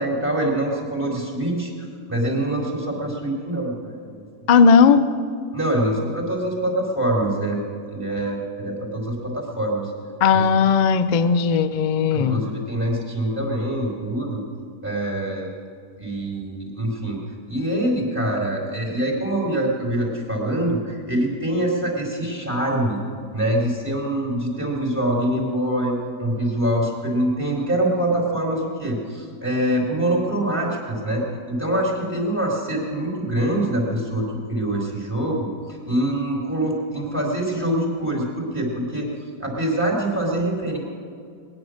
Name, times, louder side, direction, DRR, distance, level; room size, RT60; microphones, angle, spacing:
voice 1, 0.0-4.2 5.5-7.6 7.9-9.9 10.3-10.5 12.1-14.4 14.8-15.5 16.0-17.2 17.5-23.0 23.3-35.5 35.9-39.1 39.4-40.8, right 1 dB, 5° right, -2 dB, 3.6 m, -24 dB
voice 2, 4.5-5.1 10.2-12.4, left 6 dB, 60° left, 11 dB, 0.4 m, -16 dB
20.5 x 10.5 x 6.4 m, 2.3 s
omnidirectional pair, 1.7 m